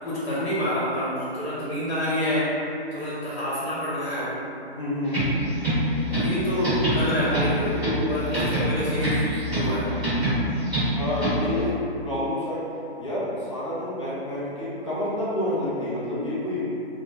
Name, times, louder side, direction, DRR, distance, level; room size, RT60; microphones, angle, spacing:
voice 1, 0.0-2.6 2.9-4.4 6.1-9.2 9.5-9.9, equal, 90° left, -10 dB, 0.9 m, -27 dB
voice 2, 4.7-5.3 10.9-12.7 13.0-16.7, left 1 dB, 30° left, -10 dB, 0.4 m, -28 dB
sound 1, 5.1-11.6, equal, 10° right, 1.0 m, -26 dB
2.2 x 2.0 x 2.8 m, 2.8 s
hypercardioid pair, 155°, 32 cm